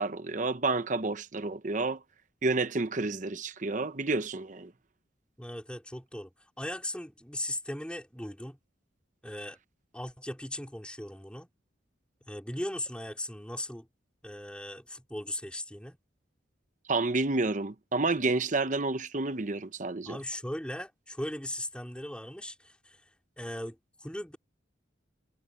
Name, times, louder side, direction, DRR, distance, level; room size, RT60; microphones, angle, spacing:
voice 1, 0.0-2.0 2.4-4.7 16.9-20.2, right 3 dB, 40° right, 0.9 m, -30 dB
voice 2, 5.4-6.3 6.6-8.6 9.2-9.6 9.9-11.5 12.3-13.9 14.2-16.0 20.1-23.0 23.4-24.4, left 1 dB, 5° left, 4.1 m, -38 dB
head